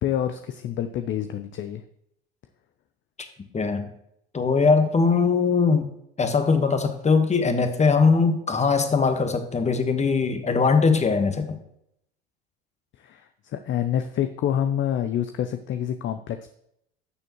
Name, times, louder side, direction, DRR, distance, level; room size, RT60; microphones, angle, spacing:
voice 1, 0.0-1.8 12.9-16.5, left 10 dB, 40° left, 9 dB, 0.6 m, -27 dB
voice 2, 3.5-3.9 4.3-5.9 6.2-11.6, left 4 dB, 20° left, 8 dB, 1.3 m, -21 dB
12.0 x 6.8 x 3.0 m, 0.76 s
hypercardioid pair, 65°, 30 cm